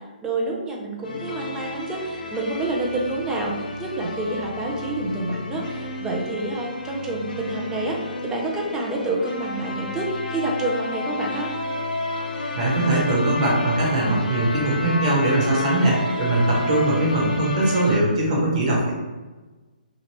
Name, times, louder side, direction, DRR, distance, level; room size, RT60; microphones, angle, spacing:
voice 1, 0.2-11.5, right 2 dB, 10° right, -2 dB, 0.5 m, -28 dB
sound 1, 1.0-18.0, left 2 dB, 65° left, 0.7 m, -31 dB
voice 2, 12.5-18.9, right 1 dB, 45° right, -4 dB, 1.2 m, -21 dB
3.1 x 2.4 x 2.9 m, 1.2 s
figure-of-eight pair, 135°, 5 cm